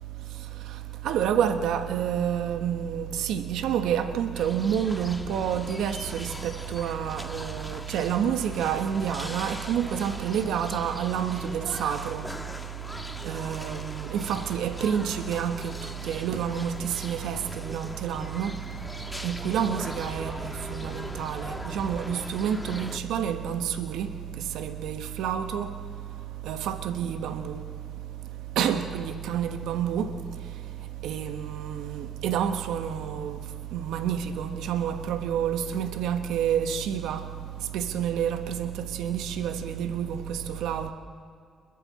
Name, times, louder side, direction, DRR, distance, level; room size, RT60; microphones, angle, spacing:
voice 1, 1.0-12.2 13.2-15.7 16.1-18.5 19.2-24.1 24.5-25.7 26.5-27.6 28.6-30.1 31.0-33.3 33.7-37.2 37.7-40.9, right 8 dB, 80° right, 1.3 m, -29 dB
sound 1, 4.3-23.0, left 1 dB, 10° left, 1.6 m, -40 dB
29.0 x 22.5 x 4.2 m
supercardioid pair, 70°, 0 cm